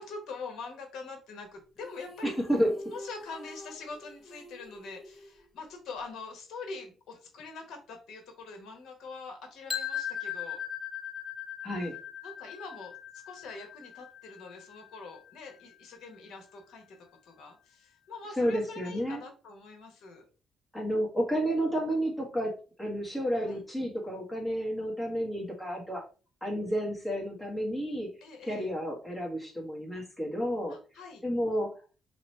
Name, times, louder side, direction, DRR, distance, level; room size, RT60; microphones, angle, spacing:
voice 1, 0.0-2.3 2.9-10.6 12.2-12.9 13.3-17.0 17.2-20.2 23.4-23.6 28.2-28.7 30.7-31.2, left 4 dB, 75° left, 4 dB, 1.2 m, -44 dB
sound 1, 1.8-6.0, equal, 45° left, 1.2 m, -48 dB
voice 2, 2.2-2.9 11.6-11.9 18.4-19.2 20.7-22.5 22.8-26.0 26.4-28.1 28.5-30.8 31.2-31.8, equal, 10° left, -2 dB, 1.6 m, -31 dB
sound 2, 9.7-15.6, left 9 dB, 30° left, 0.6 m, -39 dB
3.0 x 2.9 x 4.4 m, 0.36 s
cardioid pair, 90°, 0 cm